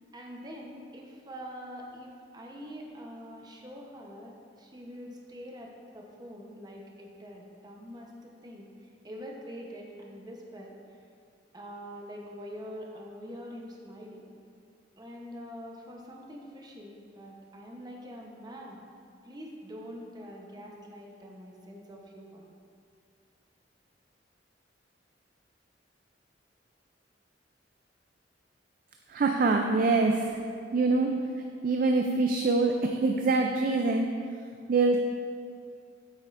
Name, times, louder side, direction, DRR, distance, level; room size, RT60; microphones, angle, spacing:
voice 1, 0.1-11.0 11.5-14.3 15.0-18.8 19.2-22.4, equal, 20° right, 0 dB, 0.9 m, -44 dB
voice 2, 29.1-30.4 30.7-31.1 31.6-34.1 34.7-35.0, right 3 dB, 50° right, 3 dB, 0.4 m, -24 dB
8.5 x 8.2 x 2.5 m, 2.3 s
head